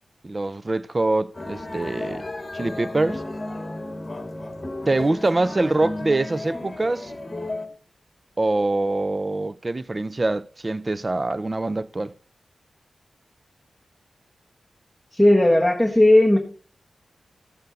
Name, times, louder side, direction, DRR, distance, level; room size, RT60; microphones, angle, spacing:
voice 1, 0.2-2.2 2.5-3.2 4.9-7.2 8.4-12.1, right 2 dB, 30° right, 0.4 m, -24 dB
sound 1, 1.3-7.7, left 2 dB, 25° left, 1.9 m, -33 dB
voice 2, 15.1-16.4, left 1 dB, ahead, 1.4 m, -16 dB
14.5 x 7.9 x 4.0 m
wide cardioid pair, 90°, 0 cm